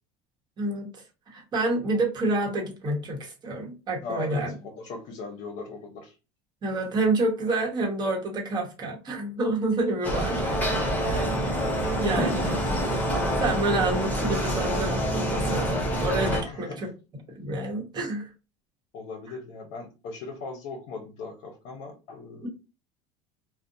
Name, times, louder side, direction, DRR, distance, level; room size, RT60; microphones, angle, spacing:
voice 1, 0.6-0.9 1.3-4.5 6.6-10.6 11.1-11.2 12.0-12.6 12.9-13.0 13.4-16.9 17.3-18.3 22.4-22.5, right 2 dB, 30° right, 0 dB, 1.0 m, -28 dB
voice 2, 4.0-6.1 11.0-11.9 12.5-12.6 16.4-16.9 18.9-22.5, left 3 dB, 60° left, 2 dB, 0.7 m, -38 dB
sound 1, 10.0-16.4, equal, 10° left, 0.7 m, -26 dB
2.5 x 2.0 x 2.6 m, 0.30 s
cardioid pair, 135°, 14 cm